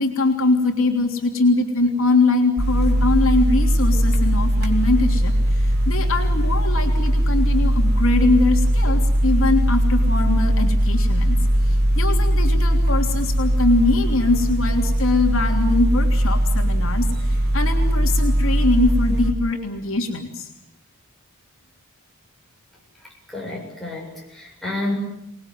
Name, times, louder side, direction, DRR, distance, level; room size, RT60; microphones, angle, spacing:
voice 1, 0.0-20.5, left 2 dB, 65° left, 2 dB, 3.3 m, -22 dB
sound 1, 2.6-19.3, equal, 45° right, 3.0 m, -19 dB
voice 2, 23.0-24.9, left 2 dB, ahead, -3 dB, 7.8 m, -30 dB
27.0 x 20.5 x 9.4 m, 0.83 s
head